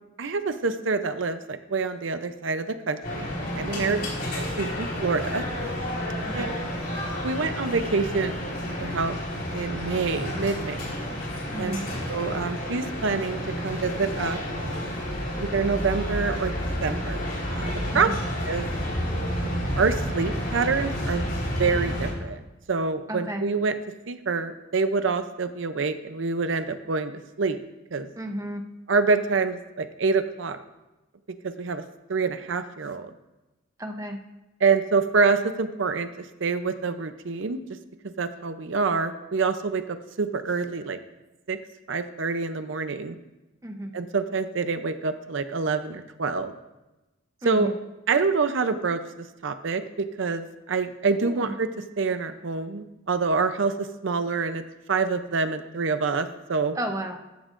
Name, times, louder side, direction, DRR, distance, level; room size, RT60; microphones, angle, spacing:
voice 1, 0.2-3.3 3.6-4.0 4.3-5.4 6.3-6.5 7.2-9.2 9.5-10.8 11.6-11.8 12.1-13.4 13.6-14.4 15.4-18.1 18.4-18.7 19.4-21.3 21.6-22.4 22.7-23.8 24.1-27.1 27.4-27.6 27.9-28.1 28.9-30.6 31.4-31.8 32.1-33.1 34.6-37.6 38.0-41.0 41.5-41.6 41.9-43.2 43.9-46.5 47.4-47.7 48.1-51.7 52.0-54.6 54.9-56.8, right 4 dB, 70° right, 9 dB, 0.6 m, -26 dB
sound 1, 3.0-22.1, equal, 50° left, 4.2 m, -30 dB
voice 2, 11.5-11.8 17.9-18.2 23.1-23.5 28.2-28.6 33.8-34.2 43.6-43.9 47.4-47.8 51.2-51.5 56.7-57.2, right 1 dB, 15° right, 5 dB, 0.7 m, -33 dB
14.5 x 11.0 x 2.5 m, 1.0 s
head